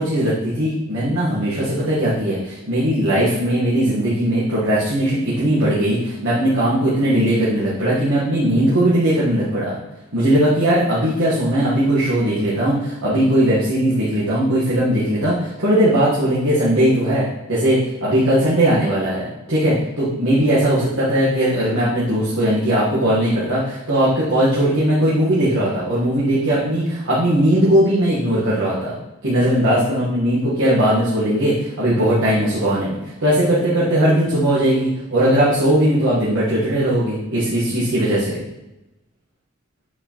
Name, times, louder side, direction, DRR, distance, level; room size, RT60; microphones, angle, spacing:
voice 1, 0.0-9.8 10.1-28.9 29.2-38.4, right 1 dB, 75° right, -8 dB, 1.4 m, -19 dB
7.8 x 4.3 x 3.0 m, 0.98 s
head